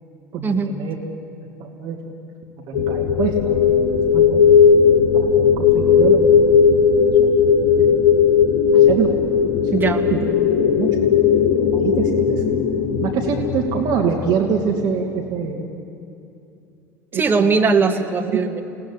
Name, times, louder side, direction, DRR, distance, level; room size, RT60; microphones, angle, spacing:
voice 1, 0.3-1.0 1.4-2.1 2.6-4.4 4.9-6.4 6.7-6.9 7.8-8.1 8.8-9.1 10.6-10.9 11.6-12.4 13.0-15.7 17.1-17.5 18.2-18.4, right 6 dB, 50° right, 2 dB, 2.3 m, -25 dB
sound 1, 2.7-15.0, left 6 dB, 45° left, 3.1 m, -16 dB
voice 2, 9.7-10.0 17.1-18.6, right 4 dB, 20° right, 4 dB, 2.4 m, -19 dB
28.0 x 18.5 x 10.0 m, 2.6 s
figure-of-eight pair, 65°, 9 cm